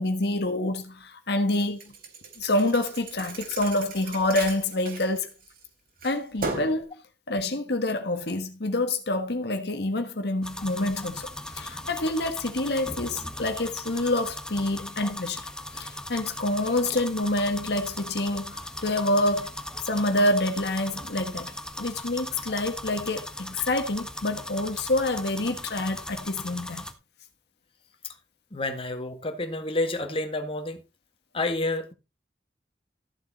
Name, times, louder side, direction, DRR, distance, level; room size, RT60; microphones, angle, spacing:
voice 1, 0.0-1.8 2.4-5.3 6.0-7.0 7.3-11.3 11.5-15.5 15.7-19.5 19.8-26.8, left 2 dB, 70° left, 1.5 m, -27 dB
Thump thud, 1.6-5.6 6.0-6.8, right 3 dB, 55° right, 4.0 m, -36 dB
sound 1, 10.4-26.9, left 1 dB, 5° left, 1.6 m, -38 dB
voice 2, 28.5-30.8 31.3-31.9, left 2 dB, 30° left, 1.9 m, -29 dB
14.0 x 7.5 x 4.1 m
head